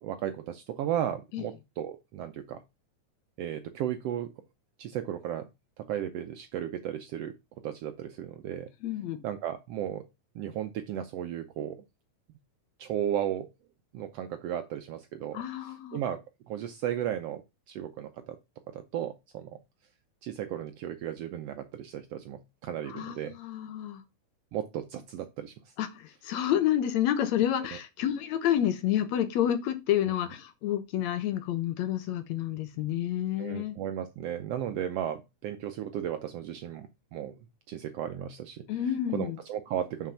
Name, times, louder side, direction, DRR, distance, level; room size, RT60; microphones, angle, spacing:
voice 1, 0.0-2.6 3.4-4.3 4.8-5.5 5.9-7.3 7.6-8.7 9.2-10.0 10.3-11.8 12.8-13.5 13.9-17.4 17.7-18.4 18.7-19.6 20.2-23.3 24.5-25.5 33.4-37.3 37.7-38.6 39.1-40.1, right 10 dB, 80° right, 1.4 m, -35 dB
voice 2, 8.8-9.2 15.3-16.0 22.9-24.0 25.8-33.8 38.7-39.4, left 11 dB, 70° left, 2.1 m, -29 dB
6.0 x 5.7 x 5.6 m
omnidirectional pair, 3.5 m